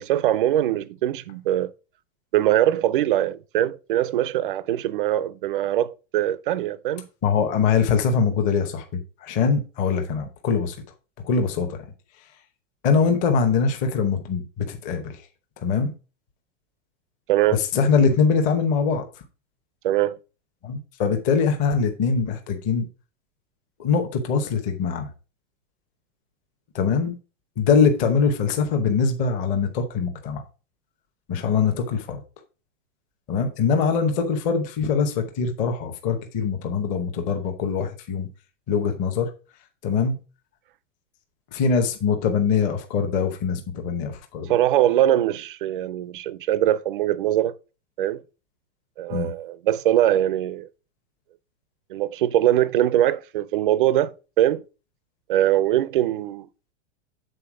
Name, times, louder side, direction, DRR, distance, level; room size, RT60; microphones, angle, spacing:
voice 1, 0.0-1.7 2.3-7.1 17.3-17.6 19.8-20.2 44.5-47.5 48.0-48.2 49.0-50.7 51.9-54.1 54.4-54.6 55.3-56.5, right 12 dB, 45° right, 0.4 m, -22 dB
voice 2, 7.2-10.8 11.2-11.8 12.8-15.2 15.6-15.9 17.6-19.0 20.6-22.8 23.8-25.1 26.7-27.1 27.6-30.4 31.3-32.2 33.3-38.3 38.7-39.3 39.8-40.2 41.5-44.5 49.1-49.3, left 5 dB, 20° left, 0.8 m, -23 dB
7.8 x 4.0 x 4.8 m
supercardioid pair, 175°, 36 cm